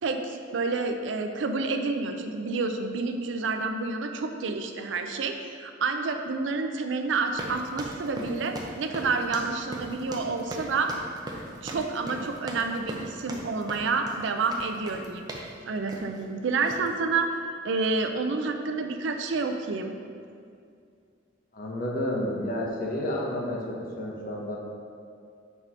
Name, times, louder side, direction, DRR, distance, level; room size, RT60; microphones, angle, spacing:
voice 1, 0.0-10.9 11.6-15.3 15.7-17.3 17.6-20.0, right 4 dB, 70° right, 6 dB, 0.5 m, -29 dB
sound 1, 7.3-15.5 15.9-16.2 16.6-16.9, right 1 dB, 20° right, 0.6 m, -39 dB
voice 2, 21.5-24.6, left 1 dB, 45° left, -2 dB, 0.9 m, -30 dB
4.6 x 4.0 x 5.4 m, 2.3 s
head